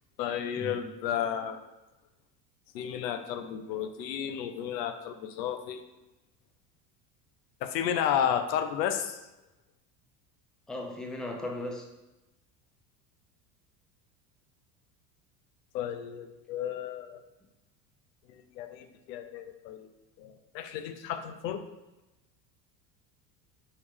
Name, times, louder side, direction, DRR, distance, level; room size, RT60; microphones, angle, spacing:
voice 1, 0.2-1.6 2.7-5.8 7.6-9.2 15.7-17.2 18.3-19.9 20.2-21.6, left 9 dB, 80° left, 8 dB, 0.6 m, -32 dB
voice 2, 10.7-11.9, left 1 dB, ahead, 1 dB, 0.5 m, -37 dB
4.5 x 3.1 x 3.4 m, 0.99 s
hypercardioid pair, 80°, 49 cm